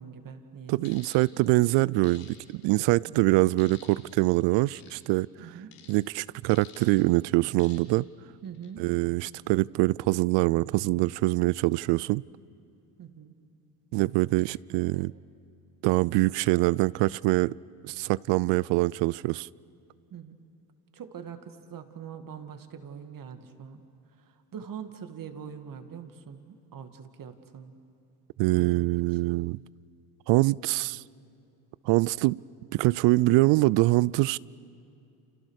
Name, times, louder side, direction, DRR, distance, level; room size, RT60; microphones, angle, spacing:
voice 1, 0.0-1.0 5.4-5.7 8.4-8.8 13.0-13.3 14.9-15.1 20.1-20.4 20.9-23.8 24.2-27.7 28.5-29.0, right 7 dB, 45° right, 2.3 m, -43 dB
voice 2, 0.7-5.3 5.9-8.1 8.8-12.2 13.9-15.1 15.8-17.6 17.8-19.5 28.4-29.6 30.3-31.0 31.9-32.4 32.7-34.4, right 21 dB, 65° right, 0.5 m, -24 dB
sound 1, 0.8-1.2 2.0-2.7 3.6-4.1 4.8-5.0 5.7-6.0 6.5-7.0 7.6-8.0 8.4-8.7, left 8 dB, 75° left, 4.8 m, -51 dB
29.5 x 28.5 x 6.5 m
supercardioid pair, 85°, 47 cm